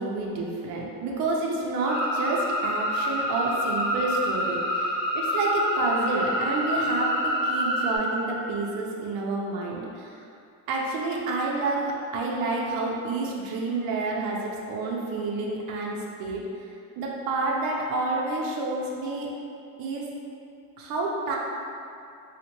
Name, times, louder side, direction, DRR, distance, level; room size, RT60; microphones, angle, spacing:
voice 1, 0.0-10.2 10.7-16.4 17.0-19.3 19.8-20.1 20.8-21.4, right 2 dB, 75° right, -2 dB, 0.6 m, -29 dB
sound 1, 1.9-8.0, equal, 85° left, 0.8 m, -27 dB
4.1 x 2.1 x 2.9 m, 2.5 s
cardioid pair, 170°, 35 cm